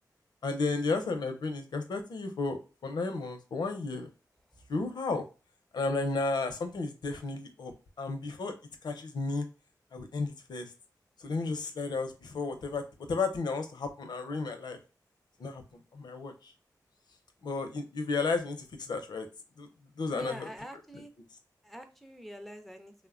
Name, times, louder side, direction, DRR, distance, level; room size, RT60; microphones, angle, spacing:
voice 1, 0.4-4.1 4.7-5.2 5.7-7.7 8.0-8.5 8.8-9.5 9.9-10.7 11.2-14.8 15.4-15.6 15.9-16.5 17.4-19.3 19.6-19.7 20.0-20.5, left 3 dB, 85° left, 6 dB, 0.5 m, -33 dB
voice 2, 20.1-21.1 21.6-22.9, equal, ahead, 5 dB, 0.4 m, -44 dB
3.1 x 2.1 x 2.4 m, 0.32 s
cardioid pair, 60°, 7 cm